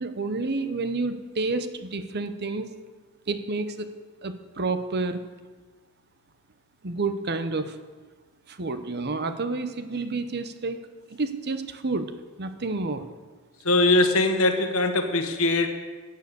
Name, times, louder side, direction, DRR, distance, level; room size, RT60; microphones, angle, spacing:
voice 1, 0.0-2.7 3.3-3.9 4.2-5.2 6.8-7.7 8.6-10.8 11.2-12.1 12.4-13.0, right 3 dB, 50° right, 10 dB, 0.9 m, -29 dB
voice 2, 13.6-15.7, left 2 dB, 65° left, 6 dB, 1.5 m, -21 dB
14.5 x 9.3 x 6.9 m, 1.4 s
head